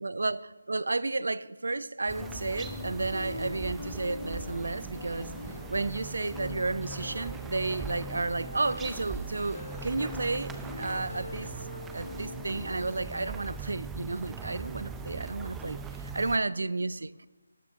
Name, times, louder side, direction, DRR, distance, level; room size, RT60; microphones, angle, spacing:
voice 1, 0.0-5.3 5.7-10.5 10.8-11.5 11.9-17.3, right 3 dB, 70° right, 0.5 m, -32 dB
sound 1, 2.1-12.9, left 2 dB, 75° left, 0.9 m, -43 dB
sound 2, 2.1-16.4, right 5 dB, 5° right, 0.5 m, -41 dB
18.5 x 9.6 x 3.6 m
figure-of-eight pair, 155°, 0 cm